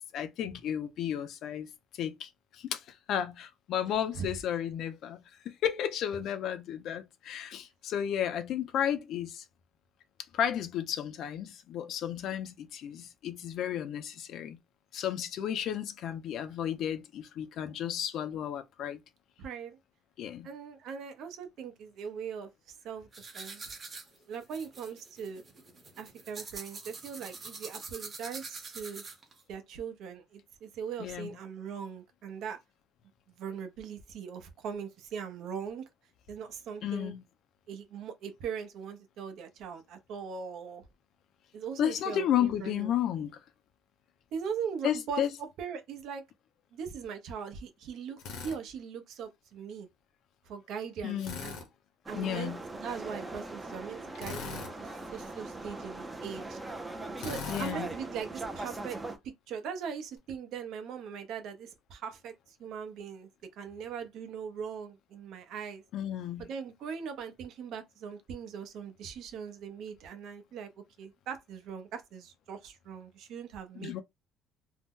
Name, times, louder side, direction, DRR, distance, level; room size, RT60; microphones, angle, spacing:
voice 1, 0.1-5.2 5.6-9.4 10.3-14.6 14.9-19.0 20.2-20.5 31.0-31.3 36.8-37.2 41.8-43.4 44.8-45.3 51.0-51.4 52.1-52.6 57.5-57.9 65.9-66.5 73.8-74.0, left 10 dB, 50° left, 0.4 m, -33 dB
voice 2, 19.4-19.8 20.4-22.5 22.8-23.1 23.3-23.6 24.3-25.4 26.0-29.0 29.5-32.6 33.4-35.9 36.3-37.1 37.7-40.8 41.5-42.9 44.3-45.2 45.6-46.2 46.7-49.9 50.5-51.6 52.1-56.6 57.2-59.0 59.2-63.3 63.6-65.8 66.4-70.7 71.0-74.0, right 7 dB, 60° right, 0.7 m, -40 dB
sound 1, 23.1-29.4, right 4 dB, 25° right, 0.9 m, -45 dB
Drill, 48.2-48.6 51.2-51.7 54.2-54.7 57.2-57.8, left 5 dB, 70° left, 0.9 m, -40 dB
sound 2, 52.1-59.2, right 2 dB, 10° right, 0.5 m, -41 dB
2.6 x 2.1 x 3.6 m
cardioid pair, 165°, 0 cm